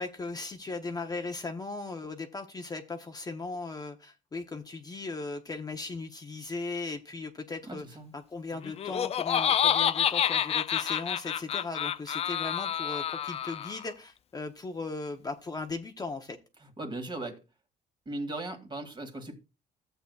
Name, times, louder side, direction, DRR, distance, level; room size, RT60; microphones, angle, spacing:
voice 1, 0.0-16.4, left 3 dB, 20° left, 0.8 m, -37 dB
voice 2, 7.7-8.1 16.8-17.4 18.1-19.4, right 2 dB, 30° right, 2.0 m, -37 dB
Laughter, 8.6-13.9, left 9 dB, 35° left, 0.4 m, -28 dB
14.0 x 7.9 x 2.3 m
cardioid pair, 110°, 17 cm